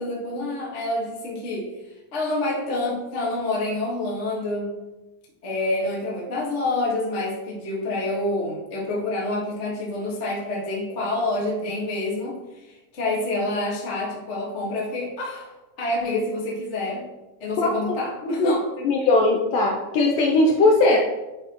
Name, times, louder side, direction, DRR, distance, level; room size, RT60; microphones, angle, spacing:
voice 1, 0.0-1.7 2.1-4.7 5.4-12.6 12.9-15.5 15.8-17.1 17.4-18.9, left 2 dB, 60° left, -5 dB, 0.7 m, -27 dB
voice 2, 17.6-18.0 18.3-18.5 18.9-21.0, left 2 dB, 85° left, 1 dB, 2.0 m, -19 dB
10.0 x 4.2 x 3.0 m, 1.0 s
omnidirectional pair, 4.4 m